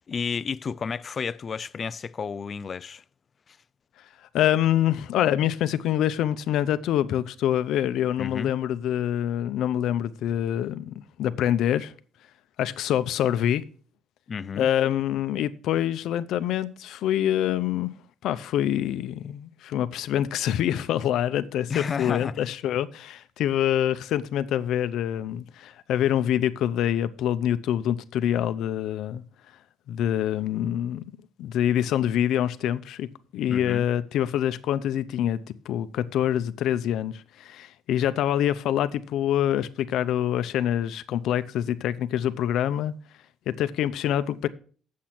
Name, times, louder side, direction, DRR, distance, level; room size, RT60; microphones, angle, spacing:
voice 1, 0.1-3.0 3.5-3.6 8.2-8.5 14.3-14.7 21.7-22.5 33.5-33.9, left 6 dB, 35° left, 0.4 m, -32 dB
voice 2, 4.3-11.9 12.6-13.6 14.6-17.9 18.2-29.2 29.9-33.1 33.3-35.4 35.6-42.9 43.5-44.5, left 11 dB, 70° left, 0.6 m, -25 dB
8.6 x 7.5 x 5.9 m
cardioid pair, 135°, 0 cm